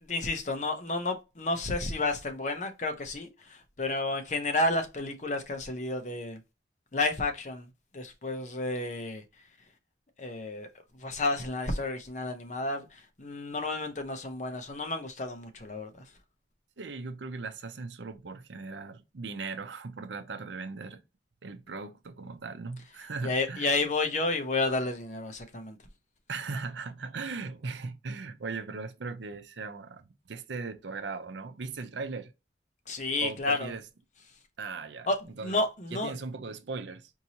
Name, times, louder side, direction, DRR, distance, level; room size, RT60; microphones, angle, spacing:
voice 1, 0.0-6.4 6.9-7.7 7.9-9.2 10.2-10.7 11.0-15.9 23.2-25.8 32.9-33.7 35.1-36.1, left 2 dB, 40° left, 0.7 m, -31 dB
voice 2, 16.8-21.0 21.4-23.7 26.3-32.3 33.2-33.8 34.6-35.1 35.4-35.6 35.9-37.1, right 4 dB, 75° right, 0.6 m, -38 dB
4.5 x 2.8 x 2.8 m
head